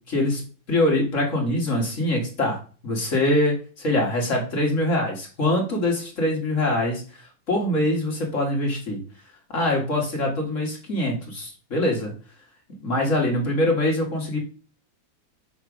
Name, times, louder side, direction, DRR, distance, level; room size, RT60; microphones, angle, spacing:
voice 1, 0.1-7.0 7.5-9.0 9.5-12.1 12.8-14.4, left 1 dB, 45° left, 0 dB, 1.9 m, -24 dB
6.6 x 3.1 x 4.8 m, 0.38 s
omnidirectional pair, 2.0 m